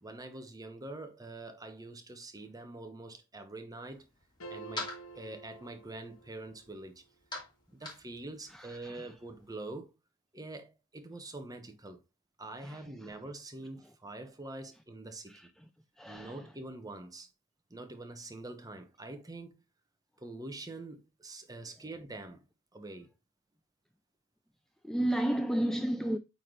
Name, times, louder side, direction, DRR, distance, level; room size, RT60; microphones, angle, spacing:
voice 1, 0.0-4.0 4.5-7.0 7.7-9.9 10.3-12.0 12.4-15.5 16.0-17.3 17.7-19.6 20.2-22.4 22.7-23.1, right 2 dB, 15° right, 1.1 m, -45 dB
sound 1, 3.8-9.5, left 2 dB, 20° left, 2.6 m, -47 dB
sound 2, 4.4-6.7, right 3 dB, 85° left, 1.4 m, -49 dB
voice 2, 16.0-16.3 24.8-26.2, right 1 dB, ahead, 0.3 m, -31 dB
8.4 x 4.1 x 3.2 m
head